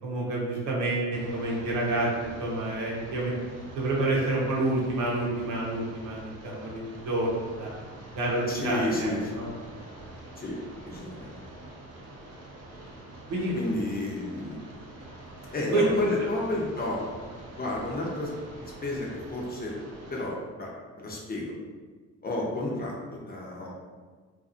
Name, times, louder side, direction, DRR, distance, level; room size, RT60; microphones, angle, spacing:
voice 1, 0.0-3.3 3.7-7.7 8.1-9.5 13.3-13.6 15.7-16.0, right 2 dB, 85° right, -4 dB, 0.8 m, -28 dB
sound 1, 1.1-20.3, right 1 dB, 55° right, 0.7 m, -46 dB
voice 2, 8.5-9.2 10.4-10.5 10.8-11.3 13.5-14.6 15.5-17.0 17.6-18.3 18.6-19.7 20.1-20.7 21.0-21.5 22.2-23.7, left 2 dB, 30° left, -3 dB, 0.6 m, -31 dB
2.6 x 2.4 x 2.5 m, 1.4 s
cardioid pair, 90°, 30 cm